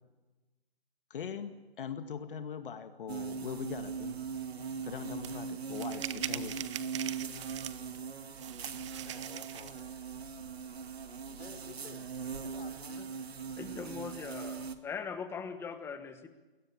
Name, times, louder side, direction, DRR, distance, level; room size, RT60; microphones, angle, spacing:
voice 1, 1.1-4.2 4.8-6.5, left 7 dB, 55° left, 8 dB, 2.1 m, -41 dB
sound 1, 3.1-14.8, right 6 dB, 80° right, 2.4 m, -40 dB
sound 2, 5.2-5.3 5.7-8.0 8.4-9.8, right 12 dB, 30° right, 0.9 m, -41 dB
voice 2, 9.0-10.4 11.4-12.1 12.4-13.0, left 5 dB, 80° left, 9 dB, 4.3 m, -52 dB
voice 3, 13.6-16.3, left 6 dB, 10° left, 9 dB, 1.4 m, -41 dB
29.5 x 21.0 x 8.8 m, 1.2 s
hypercardioid pair, 155°, 31 cm